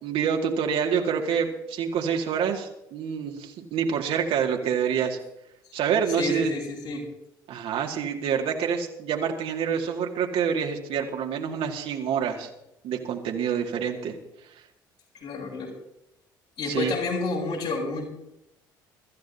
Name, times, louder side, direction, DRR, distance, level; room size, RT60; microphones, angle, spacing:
voice 1, 0.0-5.2 5.7-6.5 7.5-12.5 12.8-14.2 16.6-16.9, right 7 dB, 60° right, 1 dB, 2.3 m, -27 dB
voice 2, 6.2-7.0 15.1-15.7 16.6-18.1, left 3 dB, 60° left, -2 dB, 7.6 m, -30 dB
24.0 x 14.0 x 2.8 m, 0.83 s
figure-of-eight pair, 55°, 11 cm